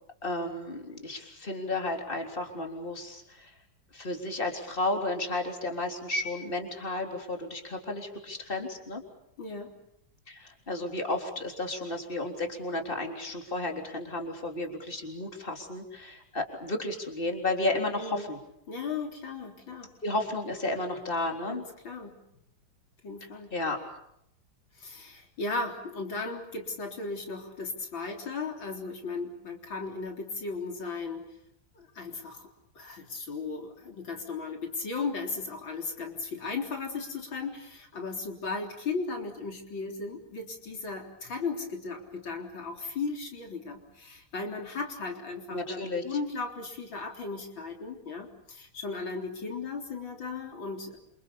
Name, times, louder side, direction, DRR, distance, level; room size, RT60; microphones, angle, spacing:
voice 1, 0.2-3.5 3.9-9.0 10.3-18.4 20.0-21.7 23.5-23.8 45.5-46.0, left 2 dB, 25° left, 3 dB, 3.9 m, -33 dB
voice 2, 9.4-9.7 17.9-18.3 18.7-19.9 21.5-22.2 23.0-23.5 24.8-31.2 31.7-32.5 32.7-51.0, left 4 dB, 85° left, 2 dB, 4.5 m, -36 dB
28.5 x 27.0 x 7.0 m, 0.77 s
omnidirectional pair, 2.1 m